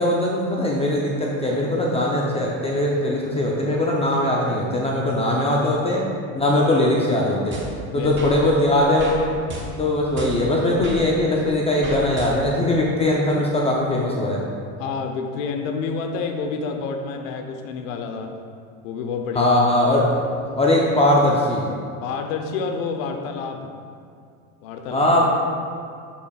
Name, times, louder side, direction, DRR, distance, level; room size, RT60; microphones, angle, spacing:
voice 1, 0.0-6.1 6.3-7.6 7.9-9.2 9.8-14.4 19.3-20.2 20.6-21.6 24.9-25.2, left 1 dB, 15° left, -3 dB, 0.6 m, -20 dB
sound 1, 7.5-8.4 9.0-9.2 9.5-11.0 11.8-12.6, right 2 dB, 30° right, 1.2 m, -33 dB
voice 2, 14.8-18.3 18.8-19.6 22.0-23.7 24.6-25.1, left 5 dB, 75° left, 5 dB, 0.9 m, -28 dB
7.1 x 7.1 x 2.4 m, 2.3 s
supercardioid pair, 120°, 41 cm